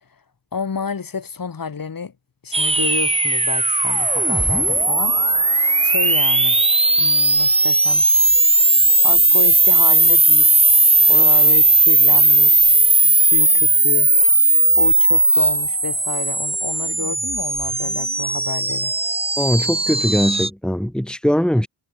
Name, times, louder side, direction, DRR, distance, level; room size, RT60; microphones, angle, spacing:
voice 1, 0.5-2.1 2.4-5.2 5.8-6.6 7.0-8.1 9.0-10.6 11.1-12.8 13.1-14.1 14.8-18.9, left 5 dB, 55° left, 7.9 m, -29 dB
sound 1, 2.5-20.5, right 2 dB, 15° right, 1.6 m, -16 dB
voice 2, 19.4-21.7, equal, ahead, 3.6 m, -20 dB
cardioid pair, 60°, 40 cm